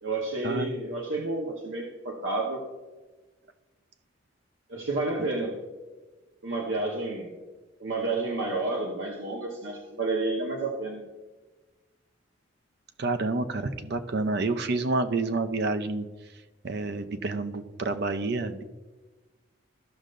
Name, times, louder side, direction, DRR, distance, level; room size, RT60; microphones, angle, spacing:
voice 1, 0.0-2.6 4.7-5.6 6.4-7.3 7.8-11.0, right 2 dB, 80° right, -2 dB, 1.1 m, -30 dB
voice 2, 13.0-16.1 16.6-18.6, right 3 dB, 60° right, 9 dB, 0.6 m, -28 dB
14.0 x 6.4 x 2.5 m, 1.2 s
head